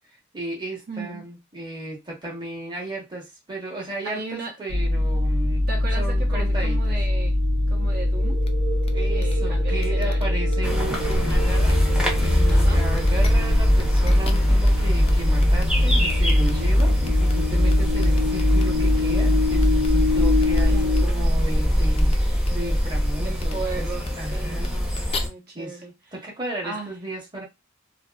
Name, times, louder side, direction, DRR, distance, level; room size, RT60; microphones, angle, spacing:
voice 1, 0.3-5.7 6.0-6.9 8.9-11.8 12.2-23.9 24.1-24.7 25.1-25.2 25.5-25.8 26.1-27.4, right 1 dB, 20° right, 1.0 m, -35 dB
voice 2, 0.9-1.3 4.0-4.6 5.7-7.4 7.7-8.4 9.1-10.8 12.5-12.8 16.6-17.0 20.7-21.3 23.2-25.9 26.6-26.9, right 3 dB, 50° right, 1.0 m, -36 dB
sound 1, 4.7-21.0, left 1 dB, 75° right, 0.8 m, -22 dB
sound 2, 8.4-8.5 8.8-8.9 9.2-9.3 9.8-10.5 10.9-11.3 11.6-12.0 12.4-12.5 12.9-13.3 13.7-14.7 15.0-15.1 15.4-17.3 17.7-18.6 19.6-19.9 20.4-20.6 20.9-21.0 21.9-22.1 22.4-22.5 23.4-23.5 24.0-24.1 24.5-25.2, left 5 dB, 30° left, 0.4 m, -38 dB
sound 3, 10.6-25.3, equal, 5° right, 0.7 m, -22 dB
2.7 x 2.6 x 2.3 m
head